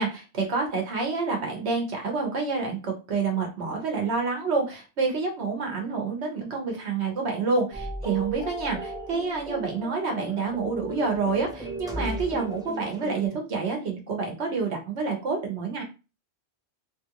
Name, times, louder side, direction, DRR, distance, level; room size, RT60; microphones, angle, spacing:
voice 1, 0.0-15.8, right 4 dB, 85° right, 1 dB, 1.2 m, -28 dB
sound 1, 7.7-13.3, right 1 dB, 5° right, 0.4 m, -36 dB
3.2 x 2.5 x 2.8 m, 0.30 s
omnidirectional pair, 1.1 m